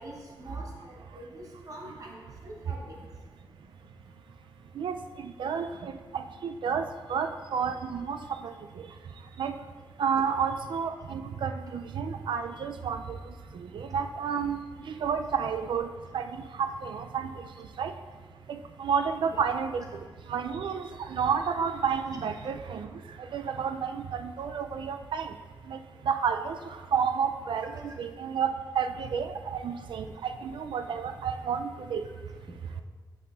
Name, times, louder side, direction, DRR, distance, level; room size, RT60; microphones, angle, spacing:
voice 1, 0.0-2.9 19.3-19.4, right 1 dB, 45° right, -1 dB, 1.1 m, -45 dB
voice 2, 4.8-8.5 9.4-9.5 10.0-13.2 13.5-15.9 16.1-17.3 17.8-17.9 18.5-19.8 20.3-22.9 23.3-25.3 25.7-25.8 26.1-26.6 26.9-32.0, right 6 dB, 80° right, 8 dB, 0.4 m, -31 dB
8.3 x 5.6 x 2.4 m, 1.5 s
wide cardioid pair, 155°, 8 cm